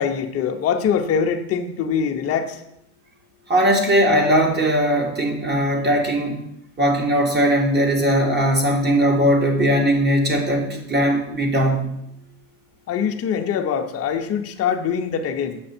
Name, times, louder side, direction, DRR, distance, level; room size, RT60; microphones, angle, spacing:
voice 1, 0.0-2.6 12.9-15.6, left 7 dB, 35° left, 3 dB, 0.9 m, -23 dB
voice 2, 3.5-6.4 6.8-11.9, equal, 25° right, 2 dB, 1.9 m, -19 dB
7.8 x 6.2 x 4.4 m, 0.77 s
supercardioid pair, 105°, 44 cm